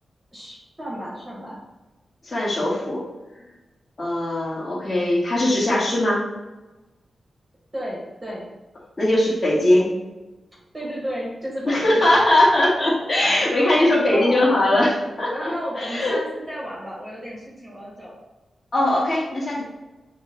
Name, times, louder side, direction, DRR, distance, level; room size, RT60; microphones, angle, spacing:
voice 1, 0.3-1.6 7.7-8.5 10.7-12.0 13.2-14.8 15.3-18.2, equal, 20° right, -5 dB, 0.9 m, -33 dB
voice 2, 2.2-3.1 4.0-6.2 9.0-9.9 11.6-16.2 18.7-19.7, left 1 dB, 30° left, -8 dB, 1.3 m, -20 dB
6.1 x 2.0 x 3.8 m, 1.1 s
wide cardioid pair, 155°, 0 cm